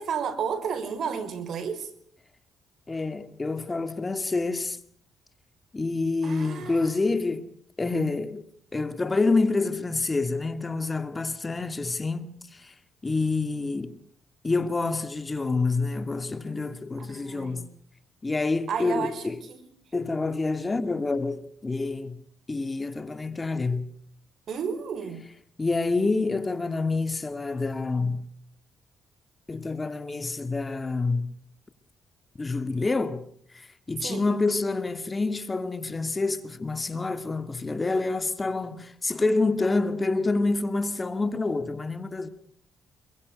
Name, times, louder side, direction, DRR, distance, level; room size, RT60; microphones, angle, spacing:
voice 1, 0.0-1.9 6.2-6.9 17.0-17.7 18.7-19.7 24.5-25.3 34.0-34.2, right 6 dB, 60° right, 4.8 m, -32 dB
voice 2, 2.9-4.8 5.7-7.5 7.8-8.4 8.7-12.7 13.0-14.0 14.4-17.7 18.2-19.4 19.9-22.2 22.5-23.9 25.6-28.2 29.5-31.3 32.4-33.2 33.5-42.3, left 3 dB, 25° left, 2.3 m, -27 dB
26.0 x 23.5 x 5.3 m
cardioid pair, 90°, 0 cm